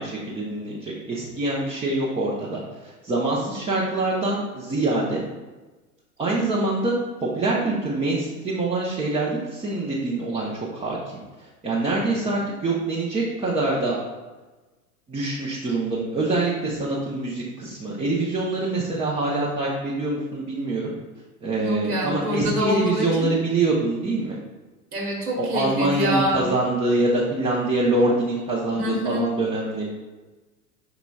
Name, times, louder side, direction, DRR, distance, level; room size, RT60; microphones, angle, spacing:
voice 1, 0.0-5.2 6.2-11.0 11.6-14.0 15.1-20.9 21.4-24.4 25.4-29.9, right 2 dB, 15° right, -6 dB, 0.7 m, -25 dB
voice 2, 21.6-23.3 24.9-26.5 28.7-29.2, equal, 70° right, -1 dB, 1.3 m, -26 dB
5.9 x 3.9 x 2.3 m, 1.2 s
figure-of-eight pair, 85°, 46 cm